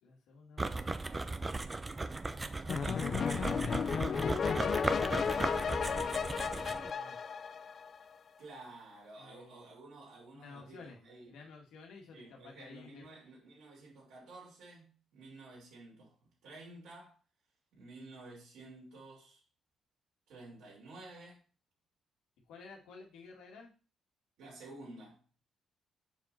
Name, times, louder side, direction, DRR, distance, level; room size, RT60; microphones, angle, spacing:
voice 1, 0.0-1.1 2.9-3.8 4.1-7.2 9.2-9.7 10.3-11.0 11.3-13.1 22.5-23.7, left 4 dB, 90° left, 1.9 m, -53 dB
sound 1, 0.6-6.9, right 3 dB, 25° right, 0.6 m, -37 dB
sound 2, 2.7-8.1, left 6 dB, 50° left, 0.4 m, -33 dB
voice 2, 2.7-4.1 8.4-11.4 12.1-16.1 16.4-17.2 17.7-19.4 20.3-21.4 24.4-25.2, right 2 dB, 85° right, 4.3 m, -52 dB
6.9 x 5.1 x 4.4 m
cardioid pair, 90°, 0 cm